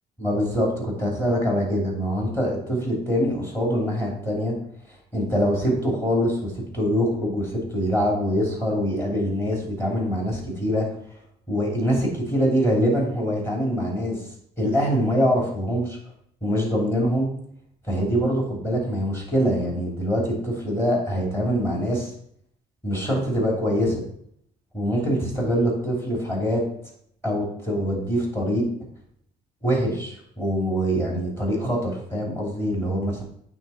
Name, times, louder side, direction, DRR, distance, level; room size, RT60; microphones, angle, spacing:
voice 1, 0.2-4.5 5.1-10.9 11.5-14.2 14.6-16.0 16.4-17.3 17.9-22.1 22.8-24.0 24.7-26.6 27.2-28.6 29.6-33.2, equal, 15° left, -2 dB, 2.8 m, -24 dB
8.7 x 3.6 x 4.3 m, 0.68 s
cardioid pair, 110°, 17 cm